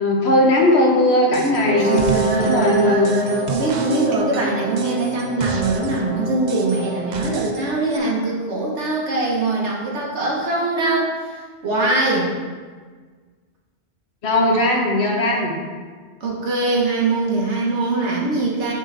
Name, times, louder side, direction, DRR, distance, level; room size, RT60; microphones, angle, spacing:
voice 1, 0.0-2.0 2.4-3.2 14.2-15.5, left 1 dB, 70° left, 0 dB, 1.3 m, -18 dB
sound 1, 1.3-1.6 1.9-6.0 6.5-7.6 7.9-8.0, right 4 dB, 50° right, 0.6 m, -32 dB
Brass instrument, 1.5-7.3, right 4 dB, 35° right, 1.7 m, -28 dB
voice 2, 1.7-12.3 16.2-18.7, right 2 dB, 80° right, -3 dB, 1.6 m, -22 dB
9.6 x 3.9 x 3.4 m, 1.5 s
omnidirectional pair, 1.2 m